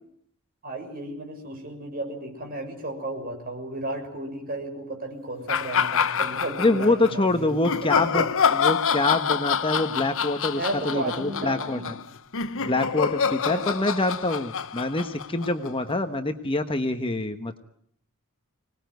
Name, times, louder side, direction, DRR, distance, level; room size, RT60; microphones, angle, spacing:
voice 1, 0.6-8.3 10.5-11.9 13.5-13.6, right 1 dB, 40° right, 3 dB, 6.7 m, -34 dB
sound 1, 5.5-7.1 7.6-15.9, left 6 dB, 60° left, 1.0 m, -26 dB
voice 2, 6.6-11.9 12.6-17.6, left 2 dB, 25° left, 7 dB, 1.2 m, -25 dB
25.5 x 20.0 x 9.3 m, 0.67 s
head